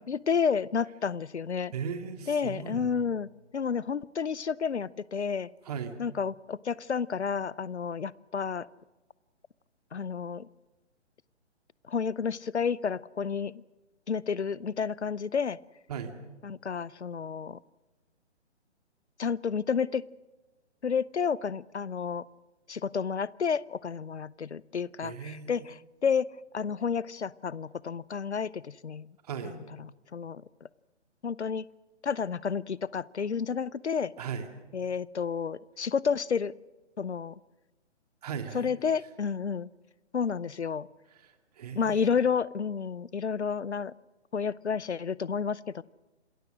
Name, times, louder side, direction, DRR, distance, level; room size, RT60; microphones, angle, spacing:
voice 1, 0.1-1.7 2.3-5.5 6.0-8.7 9.9-10.5 11.9-13.6 14.1-15.6 16.4-17.6 19.2-20.1 20.8-22.2 22.7-29.2 29.4-30.4 31.2-31.7 32.0-34.1 34.7-36.5 37.0-37.4 38.5-39.7 40.1-40.9 41.7-43.9 44.3-45.8, left 6 dB, 70° left, 22 dB, 0.7 m, -31 dB
voice 2, 1.7-3.0 5.7-5.9 15.9-16.1 25.0-25.7 29.2-29.6 34.2-34.5 38.2-38.7 41.2-42.1, right 7 dB, 35° right, 7 dB, 2.2 m, -37 dB
27.0 x 20.5 x 6.2 m, 1.2 s
figure-of-eight pair, 135°, 35 cm